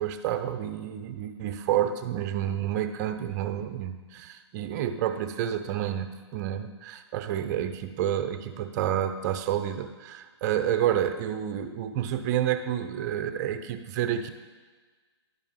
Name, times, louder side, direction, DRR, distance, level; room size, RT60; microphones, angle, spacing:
voice 1, 0.0-14.3, right 10 dB, 40° right, 9 dB, 0.6 m, -29 dB
11.0 x 5.4 x 3.6 m, 1.4 s
hypercardioid pair, 135°, 14 cm